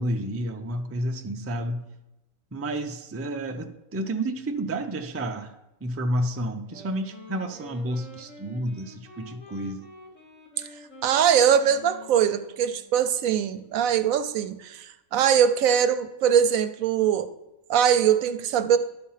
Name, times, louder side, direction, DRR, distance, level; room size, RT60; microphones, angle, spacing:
voice 1, 0.0-1.9 2.5-5.5 5.8-9.8, right 1 dB, 25° right, 5 dB, 0.3 m, -30 dB
Wind instrument woodwind instrument, 6.6-13.1, left 1 dB, 65° left, 3.0 m, -47 dB
voice 2, 11.0-17.3 17.7-18.8, right 8 dB, 80° right, 10 dB, 1.0 m, -22 dB
11.5 x 4.4 x 5.6 m, 0.97 s
omnidirectional pair, 1.4 m